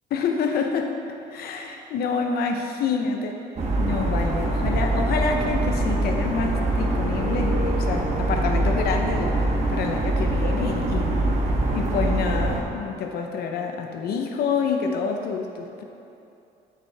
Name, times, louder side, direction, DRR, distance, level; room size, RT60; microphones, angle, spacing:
voice 1, 0.1-0.9 1.3-3.4 3.8-11.2 11.7-15.8, left 5 dB, 70° left, 4 dB, 0.9 m, -27 dB
sound 1, 3.6-12.6, right 2 dB, 40° right, 1.3 m, -24 dB
sound 2, 6.0-8.4, left 1 dB, 40° left, 1.8 m, -36 dB
8.8 x 8.3 x 3.5 m, 2.7 s
cardioid pair, 110°, 17 cm